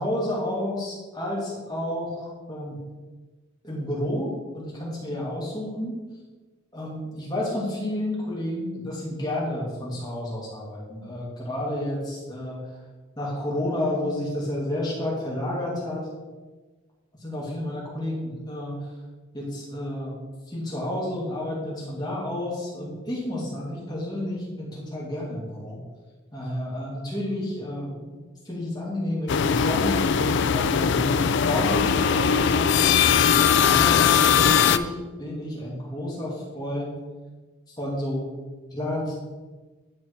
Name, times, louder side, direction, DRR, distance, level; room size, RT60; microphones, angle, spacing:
voice 1, 0.0-2.8 3.6-6.0 6.7-12.6 13.2-16.1 17.2-18.8 19.3-20.1 20.5-25.8 26.3-28.2 28.4-33.1 33.6-34.9 35.2-37.0 37.7-38.3 38.7-39.1, left 1 dB, 20° left, -5 dB, 2.5 m, -30 dB
sound 1, 29.3-34.8, left 7 dB, 55° left, 0.3 m, -20 dB
10.5 x 4.2 x 4.7 m, 1.3 s
head